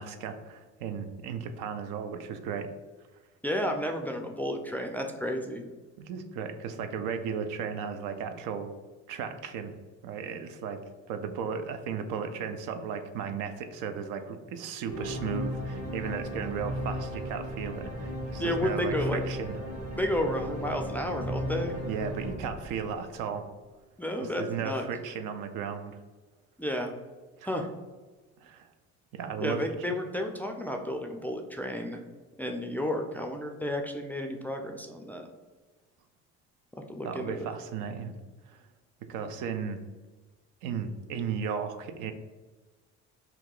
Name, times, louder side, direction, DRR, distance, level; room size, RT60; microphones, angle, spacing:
voice 1, 0.0-2.7 6.1-8.7 9.1-9.7 10.0-10.8 11.1-19.6 21.9-23.5 24.2-26.0 27.4-27.5 28.4-28.7 29.1-29.9 37.0-38.1 38.5-38.6 39.0-39.8 40.6-42.1, right 6 dB, 75° right, 8 dB, 0.5 m, -35 dB
voice 2, 3.4-5.7 18.4-19.2 20.0-21.8 24.0-24.9 26.6-26.9 27.4-27.7 29.4-32.0 32.4-35.3 36.7-37.5, left 1 dB, 5° left, 3 dB, 0.3 m, -32 dB
sound 1, 14.9-23.3, equal, 55° right, 1.2 m, -35 dB
2.8 x 2.2 x 3.7 m, 1.3 s
hypercardioid pair, 65°, 33 cm